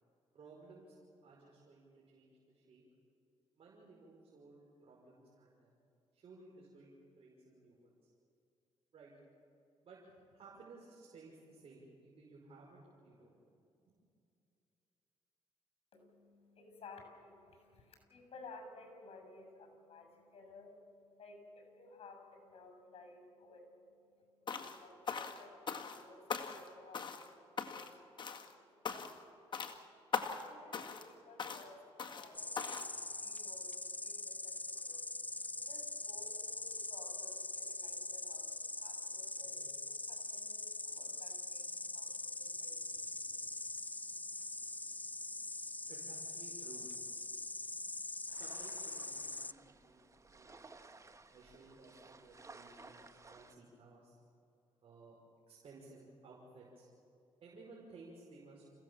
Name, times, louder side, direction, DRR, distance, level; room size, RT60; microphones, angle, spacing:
voice 1, 0.3-1.0 1.2-2.8 3.6-5.8 6.1-8.1 8.9-9.1 9.8-13.4 39.4-39.7 44.0-44.1 45.9-46.9 48.3-50.8 51.3-54.2 54.8-55.2 55.5-56.9 57.4-58.8, right 3 dB, 60° right, -4 dB, 5.6 m, -58 dB
voice 2, 15.9-43.0, left 3 dB, 60° left, 5 dB, 6.9 m, -58 dB
sound 1, 24.5-24.8 25.1-26.0 26.3-26.7 26.9-27.3 27.6-27.9 28.2-28.5 28.8-29.2 29.5-29.8 30.1-30.5 30.7-31.1 31.4-31.7 32.0-32.3 32.6-32.9, left 5 dB, 45° left, 1.9 m, -40 dB
Insect, 32.3-49.5, left 2 dB, 15° left, 0.5 m, -43 dB
sound 2, 48.3-53.5, right 3 dB, 30° right, 1.5 m, -57 dB
29.0 x 16.5 x 7.3 m, 2.6 s
cardioid pair, 80°, 11 cm